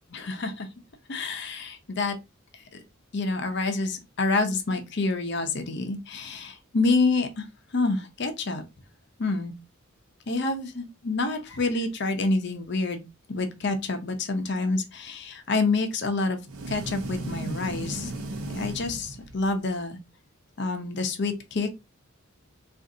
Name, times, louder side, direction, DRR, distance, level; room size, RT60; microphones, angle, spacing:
voice 1, 0.1-0.7 1.1-2.1 2.7-2.8 3.1-7.5 7.7-8.6 9.2-9.5 10.3-13.0 13.3-16.4 16.7-18.1 18.5-20.0 20.6-21.7, left 3 dB, 50° left, 0.6 m, -27 dB
sound 1, 16.5-19.6, right 2 dB, 90° right, 0.6 m, -35 dB
2.6 x 2.5 x 3.7 m
head